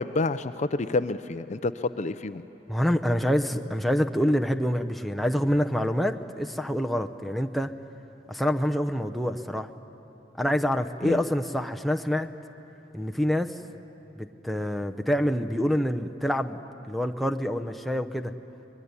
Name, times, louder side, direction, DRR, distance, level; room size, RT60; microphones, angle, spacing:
voice 1, 0.0-2.4 11.0-11.2, left 3 dB, 40° left, 12 dB, 0.5 m, -28 dB
voice 2, 2.7-7.7 8.3-9.7 10.4-12.3 12.9-13.5 14.2-16.6 16.9-18.3, equal, ahead, 4 dB, 0.7 m, -26 dB
24.0 x 21.0 x 9.7 m, 2.9 s
head